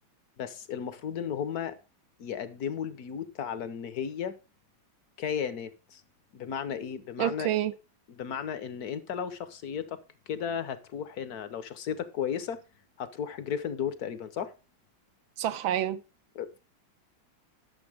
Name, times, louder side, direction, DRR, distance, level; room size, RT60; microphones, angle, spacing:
voice 1, 0.4-1.8 2.2-4.4 5.2-6.0 6.3-7.5 8.1-12.6 13.0-14.5 16.3-16.6, left 8 dB, 55° left, 1.3 m, -34 dB
voice 2, 7.2-7.7 15.4-16.0, right 11 dB, 80° right, 1.5 m, -28 dB
12.0 x 7.0 x 4.9 m
omnidirectional pair, 2.2 m